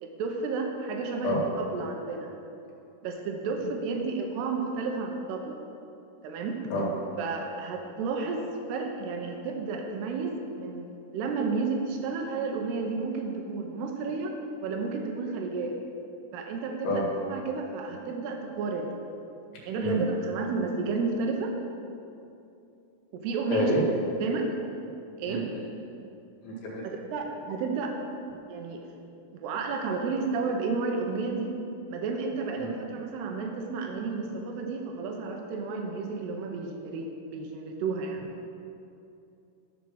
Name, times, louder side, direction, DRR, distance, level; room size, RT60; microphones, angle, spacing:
voice 1, 0.0-2.3 3.0-5.6 6.2-6.6 7.2-8.4 8.7-14.4 14.6-15.8 16.3-19.0 19.7-21.5 23.1-23.7 24.2-24.5 25.2-25.4 26.8-28.0 28.5-28.8 29.3-31.5 31.9-38.3, right 4 dB, 75° right, 2 dB, 2.5 m, -32 dB
voice 2, 23.5-23.8 25.3-25.7 26.4-26.9 32.6-32.7, equal, 70° left, -4 dB, 4.2 m, -28 dB
12.5 x 6.3 x 6.3 m, 2.7 s
omnidirectional pair, 5.8 m